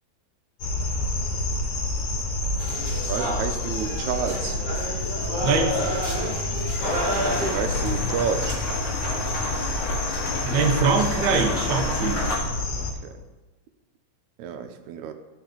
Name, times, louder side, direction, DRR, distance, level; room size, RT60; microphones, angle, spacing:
sound 1, 0.6-12.9, left 2 dB, 75° left, 2.5 m, -28 dB
sound 2, 2.6-7.6, equal, 35° right, 1.0 m, -30 dB
voice 1, 3.1-4.6 7.2-8.6 12.8-13.2 14.4-15.1, right 7 dB, 80° right, 7 dB, 2.0 m, -30 dB
voice 2, 5.4-5.8 10.4-12.2, right 5 dB, 60° right, 3 dB, 1.1 m, -23 dB
sound 3, 6.8-12.4, left 2 dB, 45° left, 2.3 m, -31 dB
14.5 x 5.5 x 3.9 m, 1.2 s
omnidirectional pair, 3.3 m